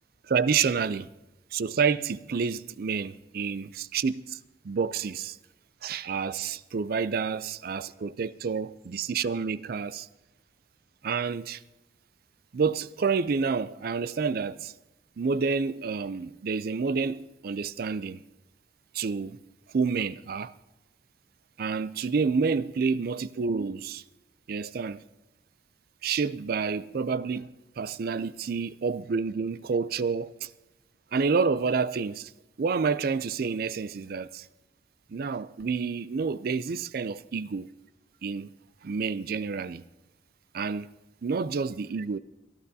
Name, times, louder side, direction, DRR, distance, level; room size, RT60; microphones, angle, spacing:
voice 1, 0.3-1.1 1.5-4.4 4.6-5.4 5.8-10.1 11.0-11.6 12.5-14.7 15.2-18.2 18.9-19.4 19.7-20.5 21.6-24.0 24.5-25.0 26.0-30.5 31.1-32.3 32.6-34.5 35.1-37.7 38.2-38.5 38.8-39.8 40.5-40.9 41.2-42.2, right 5 dB, 55° right, 0.4 m, -29 dB
24.5 x 11.5 x 2.7 m
head